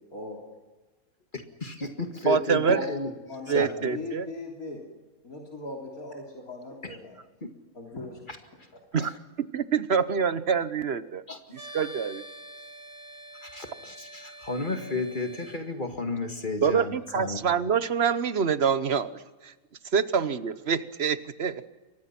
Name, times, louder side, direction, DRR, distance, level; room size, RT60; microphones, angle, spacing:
voice 1, 1.3-3.1 3.5-4.0 6.8-7.0 8.3-8.4 9.0-9.1 11.3-11.6 13.4-17.4, left 3 dB, 35° left, 5 dB, 2.2 m, -33 dB
voice 2, 2.3-2.8 3.5-4.3 8.9-9.1 9.4-11.2 11.7-12.2 16.6-19.5 19.9-21.6, right 6 dB, 50° right, 14 dB, 1.2 m, -26 dB
voice 3, 3.3-4.8 5.2-7.2 7.7-8.2, left 1 dB, 80° left, 0 dB, 3.8 m, -38 dB
sound 1, 11.5-15.6, right 1 dB, 35° right, 4.7 m, -45 dB
29.0 x 23.5 x 6.0 m, 1.2 s
omnidirectional pair, 1.5 m